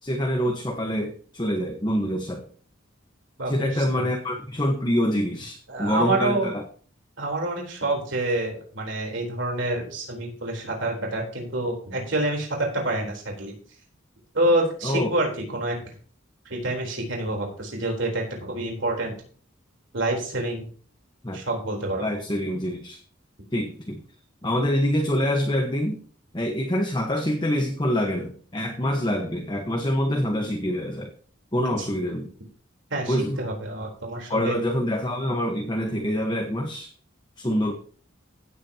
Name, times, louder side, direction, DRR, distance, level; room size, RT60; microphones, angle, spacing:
voice 1, 0.0-2.4 3.5-6.6 14.8-15.1 21.2-21.4 22.0-23.0 23.5-24.0 24.4-26.0 26.3-31.1 31.5-32.3 33.1-33.4 34.3-36.9 37.4-37.7, equal, 25° left, 2 dB, 1.2 m, -25 dB
voice 2, 3.4-4.1 5.7-6.5 7.2-13.5 14.3-15.8 16.5-19.2 19.9-20.7 21.3-22.1 31.8-31.9 32.9-34.6, right 1 dB, 70° right, 0 dB, 3.8 m, -27 dB
16.5 x 8.4 x 2.9 m, 0.44 s
head